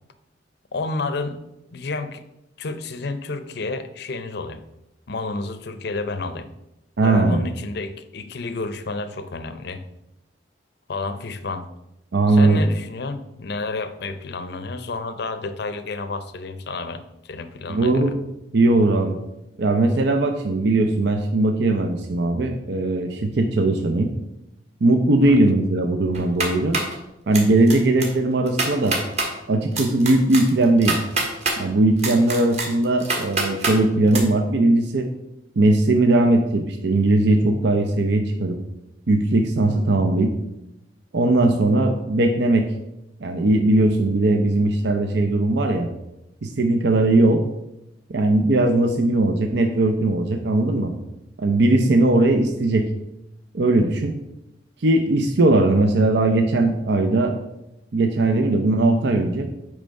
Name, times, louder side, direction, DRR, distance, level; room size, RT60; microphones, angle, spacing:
voice 1, 0.7-1.4 1.7-2.2 2.6-4.6 5.1-6.5 7.0-9.8 10.9-11.7 12.3-18.1 25.3-25.4, left 3 dB, 60° left, 10 dB, 0.6 m, -30 dB
voice 2, 7.0-7.4 12.1-12.6 17.7-18.2 18.5-19.2 19.6-24.1 24.8-26.8 27.3-29.0 29.5-31.0 31.6-35.1 35.6-38.6 39.1-40.3 41.1-42.7 43.2-45.9 46.4-47.4 48.1-50.9 51.4-52.9 53.5-54.2 54.8-57.4 57.9-59.5, right 2 dB, 65° right, 4 dB, 0.6 m, -19 dB
sound 1, 26.1-26.9 27.3-27.7 28.0-28.1 28.5-29.3 29.8-31.6 32.0-33.8 34.1-34.2, right 3 dB, 35° right, 1.5 m, -25 dB
8.7 x 3.3 x 5.3 m, 0.89 s
head